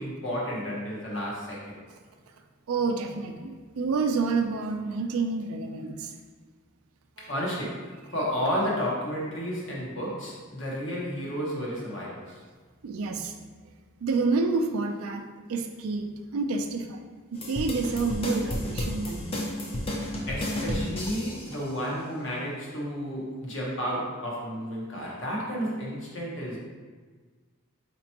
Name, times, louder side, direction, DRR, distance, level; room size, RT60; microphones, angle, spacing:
voice 1, 0.0-1.8 7.2-7.9 8.1-12.4 20.2-26.6, equal, 60° left, -5 dB, 1.0 m, -32 dB
voice 2, 2.7-6.1 7.2-7.3 12.8-13.3 14.0-17.0 17.3-19.8, right 4 dB, 85° right, 5 dB, 0.4 m, -29 dB
sound 1, 17.4-21.5, left 1 dB, 25° left, 0.5 m, -32 dB
4.3 x 2.9 x 2.8 m, 1.5 s
head